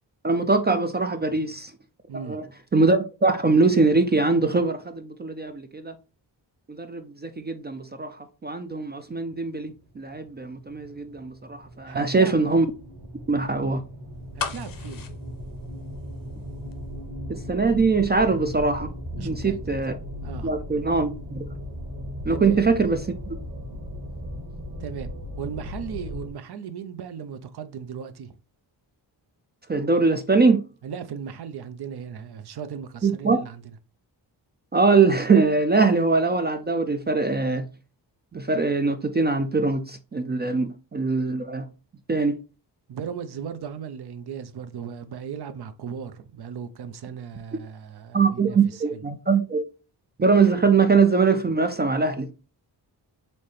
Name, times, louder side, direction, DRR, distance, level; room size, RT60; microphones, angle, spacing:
voice 1, 0.2-1.7 2.1-2.4 2.7-5.9 6.7-8.2 8.4-12.7 13.3-13.8 17.3-18.9 19.2-20.0 20.4-21.5 22.3-23.3 29.7-30.6 33.0-33.4 34.7-37.7 38.3-41.7 42.1-42.4 48.1-49.6 50.2-52.4, right 4 dB, 25° right, 0.4 m, -22 dB
voice 2, 2.1-2.4 11.9-12.4 14.4-15.0 19.1-19.6 20.2-20.5 22.3-22.6 24.8-25.1 25.4-28.3 30.8-33.6 42.9-49.0, right 7 dB, 60° right, 0.6 m, -37 dB
sound 1, 9.6-26.3, equal, 45° right, 1.6 m, -37 dB
sound 2, 14.4-16.4 16.7-16.8, left 6 dB, 50° left, 0.7 m, -35 dB
4.2 x 3.2 x 3.2 m
cardioid pair, 90°, 44 cm